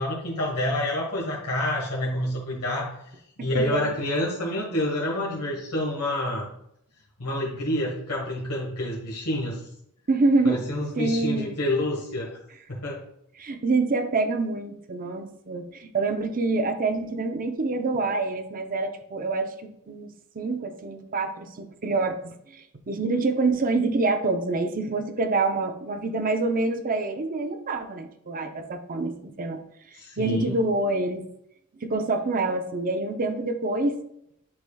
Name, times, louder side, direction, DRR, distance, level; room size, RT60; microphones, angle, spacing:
voice 1, 0.0-2.9 3.4-6.5 7.2-9.7 10.4-12.4 12.7-13.0 29.9-30.6, left 1 dB, 85° left, -3 dB, 1.4 m, -28 dB
voice 2, 3.5-3.9 10.1-10.6 11.0-11.5 13.4-29.6 30.2-31.3 31.8-34.0, right 3 dB, 40° right, 7 dB, 0.6 m, -26 dB
9.5 x 4.9 x 2.3 m, 0.74 s
head